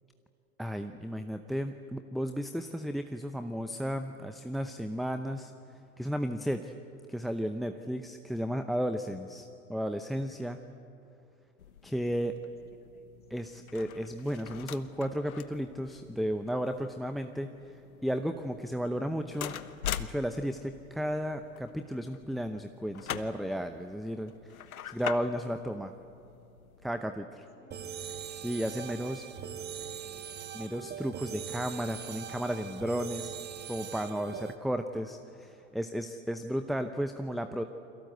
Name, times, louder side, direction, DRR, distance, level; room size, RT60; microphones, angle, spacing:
voice 1, 0.6-5.5 6.0-6.7 7.1-10.6 11.8-12.3 13.3-17.5 18.0-19.5 20.0-24.5 24.9-25.9 26.8-27.5 28.3-29.3 30.5-33.3 33.7-37.6, equal, ahead, 8 dB, 0.7 m, -34 dB
voice 2, 7.6-7.9 11.8-13.6 25.5-25.8 27.3-28.1 29.5-30.5 37.2-37.7, left 6 dB, 20° left, 4 dB, 3.1 m, -63 dB
sound 1, 11.6-27.0, left 10 dB, 75° left, 1.2 m, -44 dB
sound 2, 27.7-34.6, right 8 dB, 25° right, 1.5 m, -41 dB
29.5 x 22.5 x 8.0 m, 2.8 s
hypercardioid pair, 95°, 42 cm